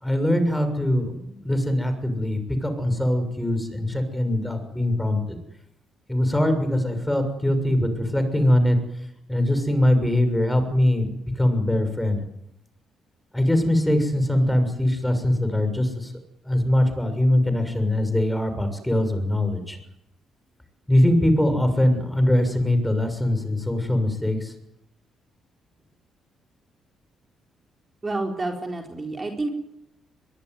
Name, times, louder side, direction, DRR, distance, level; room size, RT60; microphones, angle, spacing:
voice 1, 0.0-5.4 6.1-8.8 9.3-12.2 13.3-16.1 16.4-19.8 20.9-24.5, left 1 dB, 5° left, 8 dB, 6.6 m, -22 dB
voice 2, 28.0-29.5, right 2 dB, 25° right, 2 dB, 4.4 m, -29 dB
23.0 x 21.5 x 9.6 m, 0.83 s
cardioid pair, 90°, 0 cm